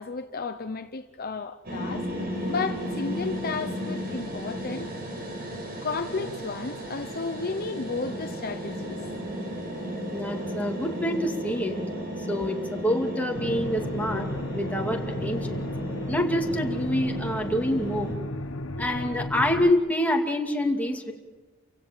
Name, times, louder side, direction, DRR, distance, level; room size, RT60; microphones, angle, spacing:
voice 1, 0.0-2.1 2.5-4.9 5.8-9.0 19.0-19.2, left 4 dB, 45° left, 0.8 m, -33 dB
sound 1, 1.6-18.1, equal, 45° right, 5.6 m, -34 dB
voice 2, 10.1-11.8 12.3-14.3 14.5-15.7 16.1-18.1 18.8-21.1, left 1 dB, 5° left, 2.5 m, -26 dB
sound 2, 13.3-19.7, left 1 dB, 75° left, 1.2 m, -34 dB
29.5 x 16.5 x 7.5 m
head